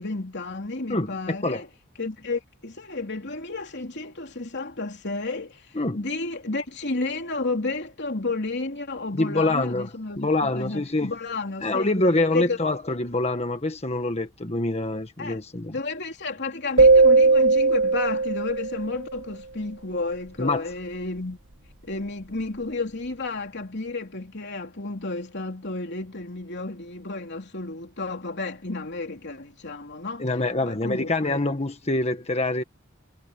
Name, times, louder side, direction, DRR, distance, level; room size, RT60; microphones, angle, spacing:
voice 1, 0.0-1.7 2.0-11.9 12.3-12.6 15.2-15.4 15.7-21.4 21.8-30.2 30.6-31.4, left 3 dB, 50° left, 3.3 m, -32 dB
voice 2, 0.9-1.6 5.7-6.0 9.1-11.1 11.6-15.7 20.4-20.7 30.2-32.6, left 2 dB, 30° left, 1.5 m, -25 dB
sound 1, 16.8-19.0, right 3 dB, 60° right, 3.4 m, -18 dB
head